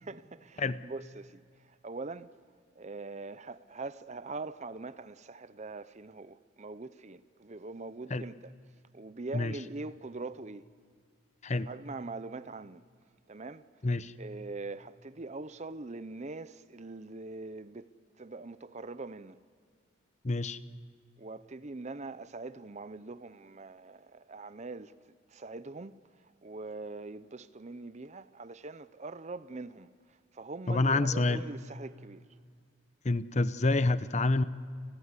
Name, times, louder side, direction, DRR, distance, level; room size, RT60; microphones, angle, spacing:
voice 1, 0.0-2.3 2.8-8.5 8.9-10.6 11.7-12.8 13.3-13.6 14.2-17.9 18.2-19.4 21.2-24.9 25.3-25.9 26.4-29.9 30.3-32.2, right 3 dB, 35° right, 0.6 m, -42 dB
voice 2, 20.2-20.6 30.7-31.4 33.0-34.4, left 2 dB, 35° left, 0.7 m, -27 dB
30.0 x 20.5 x 8.3 m
head